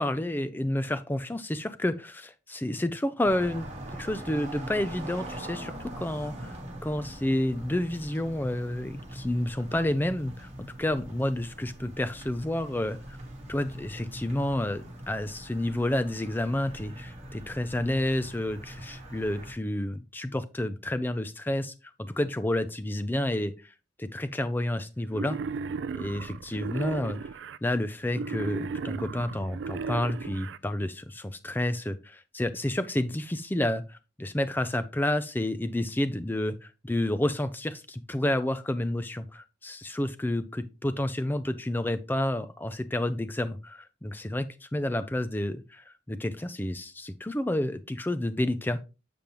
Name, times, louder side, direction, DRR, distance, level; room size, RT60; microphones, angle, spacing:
voice 1, 0.0-3.6 3.9-6.6 6.8-13.0 13.5-21.7 22.0-23.5 24.0-25.4 25.9-48.8, left 1 dB, 10° left, 0.4 m, -30 dB
sound 1, 3.2-19.5, right 1 dB, 35° right, 1.5 m, -42 dB
Wild animals, 25.1-27.6 28.1-30.6, right 5 dB, 70° right, 0.3 m, -35 dB
6.9 x 5.1 x 3.0 m
head